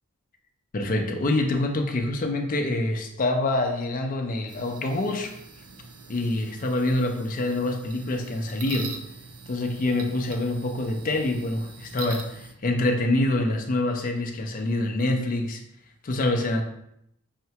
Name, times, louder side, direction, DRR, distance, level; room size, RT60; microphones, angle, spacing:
voice 1, 0.7-5.3 6.1-8.9 9.5-15.6 16.0-16.6, left 2 dB, 40° left, 4 dB, 0.5 m, -26 dB
sound 1, 4.5-12.5, right 4 dB, 90° right, 0.6 m, -43 dB
5.6 x 2.2 x 2.8 m, 0.76 s
head